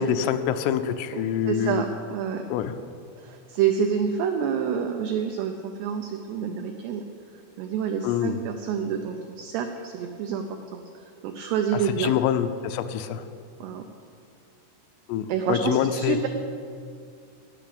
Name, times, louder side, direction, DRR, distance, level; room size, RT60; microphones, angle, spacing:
voice 1, 0.0-1.8 2.5-2.8 8.0-8.4 11.7-13.3 15.1-16.2, left 9 dB, 85° left, 9 dB, 3.2 m, -26 dB
voice 2, 1.1-2.4 3.2-7.0 7.6-10.8 11.2-12.1 13.6-13.8 15.3-16.3, right 7 dB, 90° right, 5 dB, 2.3 m, -28 dB
17.5 x 6.0 x 8.6 m, 2.3 s
omnidirectional pair, 5.7 m